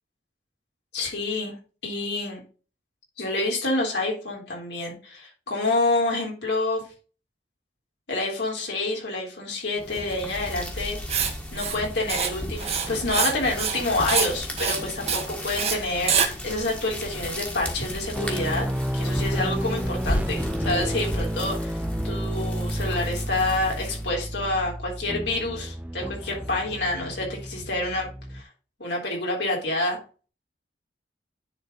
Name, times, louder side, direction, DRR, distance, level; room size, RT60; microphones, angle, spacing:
voice 1, 0.9-1.5 1.8-2.4 3.2-6.8 8.1-11.0 11.5-18.7 18.9-28.1 28.3-28.4 28.8-30.0, left 2 dB, 70° left, -1 dB, 3.6 m, -28 dB
sound 1, 9.8-24.2, equal, 10° left, 1.6 m, -34 dB
Writing, 11.1-11.3 11.6-11.8 12.1-12.3 12.6-13.3 13.6-13.8 14.1-14.3 14.6-14.8 15.1-15.3 15.6-15.8 16.1-16.3, right 7 dB, 35° right, 1.2 m, -24 dB
sound 2, 18.1-28.4, equal, 10° right, 0.5 m, -31 dB
10.0 x 4.2 x 3.9 m, 0.36 s
head